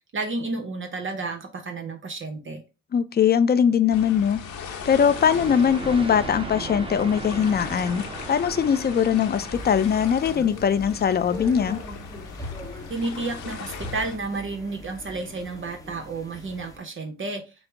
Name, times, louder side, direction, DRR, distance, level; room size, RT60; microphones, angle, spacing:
voice 1, 0.1-2.6 12.9-17.4, right 3 dB, 40° right, 0.8 m, -31 dB
voice 2, 2.9-4.4 4.9-11.8, left 7 dB, 35° left, 0.4 m, -21 dB
sound 1, 3.9-14.2, left 6 dB, 70° left, 0.9 m, -39 dB
sound 2, 4.8-10.5, right 2 dB, 20° right, 1.3 m, -37 dB
sound 3, 9.5-16.8, left 1 dB, 10° left, 0.8 m, -40 dB
5.1 x 2.0 x 4.4 m
cardioid pair, 90°, 30 cm